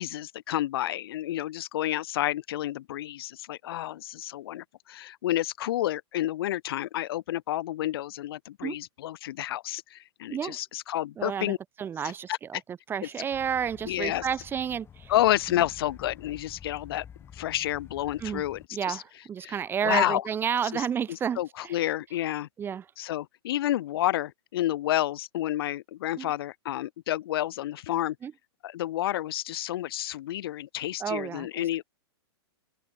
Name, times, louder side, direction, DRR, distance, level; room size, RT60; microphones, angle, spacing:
voice 1, 0.0-11.6 12.3-12.6 13.9-14.3 15.1-17.1 17.3-19.0 19.4-19.6 19.8-20.2 20.7-22.5 23.0-28.2 28.6-31.8, left 13 dB, 60° left, 1.6 m, -30 dB
voice 2, 11.2-12.6 12.9-15.1 18.2-18.4 18.7-21.8 22.6-22.8 26.2-26.3 28.2-28.3 31.0-31.5, right 8 dB, 15° right, 0.9 m, -31 dB
sound 1, 13.3-18.7, left 8 dB, 15° left, 1.9 m, -49 dB
open air
hypercardioid pair, 145°, 14 cm